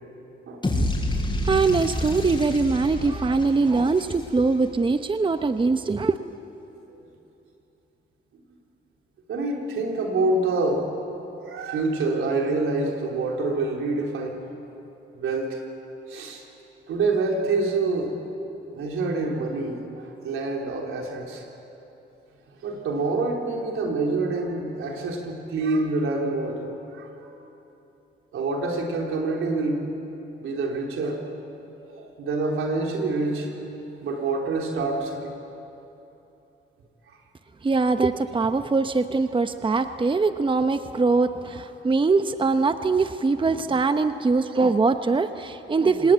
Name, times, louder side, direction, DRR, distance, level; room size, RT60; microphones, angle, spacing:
sound 1, 0.6-4.7, left 1 dB, 20° left, 7.7 m, -28 dB
voice 1, 1.4-6.1 37.6-46.1, right 4 dB, 25° right, 9 dB, 0.8 m, -22 dB
voice 2, 9.3-10.9 11.4-14.4 15.1-15.6 16.1-16.4 16.9-18.1 18.7-21.4 22.6-26.7 27.0-27.3 28.3-29.9 30.4-31.2 31.7-35.4 39.8-39.9, right 3 dB, 80° right, 1 dB, 4.0 m, -27 dB
26.5 x 19.5 x 9.4 m, 3.0 s
cardioid pair, 80°, 21 cm